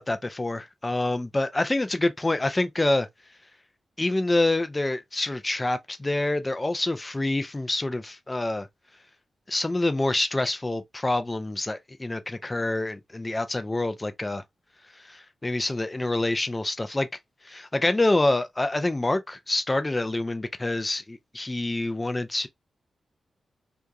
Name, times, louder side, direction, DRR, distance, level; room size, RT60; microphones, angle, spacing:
voice 1, 0.0-3.1 4.0-8.7 9.5-14.4 15.0-17.1 17.5-22.5, left 2 dB, 15° left, 0.3 m, -26 dB
2.9 x 2.3 x 2.3 m
wide cardioid pair, 160°, 0 cm